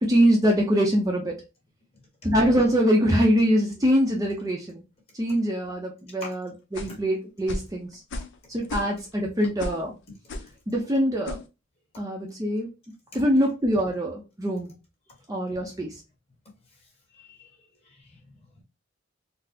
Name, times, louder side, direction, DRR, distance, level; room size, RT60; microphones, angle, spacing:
voice 1, 0.0-1.3 2.2-4.8 5.2-7.9 8.5-9.9 10.7-11.4 12.0-12.7 13.1-14.7 15.3-15.9, equal, 15° right, 0.5 m, -23 dB
sound 1, 6.7-7.0 7.5-7.7 8.1-8.4 8.6-9.1 9.6-9.9 10.3-10.5 11.3-11.5, left 1 dB, 65° left, 0.5 m, -34 dB
voice 2, 17.1-17.5 17.8-18.6, left 2 dB, 30° left, 1.4 m, -45 dB
4.0 x 2.0 x 2.7 m
head